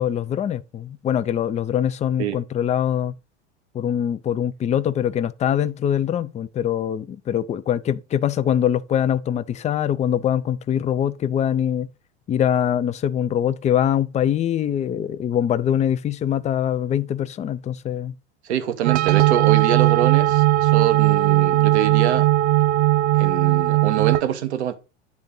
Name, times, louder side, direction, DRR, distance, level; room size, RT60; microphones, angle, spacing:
voice 1, 0.0-3.1 3.7-11.9 12.3-18.1, left 9 dB, 20° left, 0.5 m, -23 dB
voice 2, 18.4-22.3 23.2-24.7, right 10 dB, 75° right, 1.1 m, -25 dB
sound 1, 18.8-24.2, right 16 dB, 45° right, 0.6 m, -18 dB
9.5 x 3.6 x 5.4 m
hypercardioid pair, 80°, 34 cm